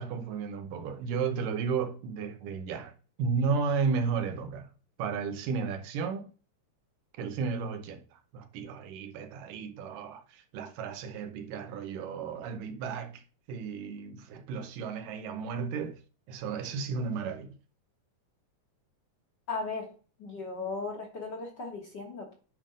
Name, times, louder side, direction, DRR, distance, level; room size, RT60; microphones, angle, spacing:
voice 1, 0.0-4.7 5.0-6.3 7.2-13.2 13.5-16.0 16.3-17.5, right 5 dB, 90° right, 2.6 m, -33 dB
voice 2, 19.5-19.9 20.2-22.3, left 3 dB, 50° left, 1.4 m, -36 dB
9.7 x 3.7 x 5.0 m
omnidirectional pair, 3.7 m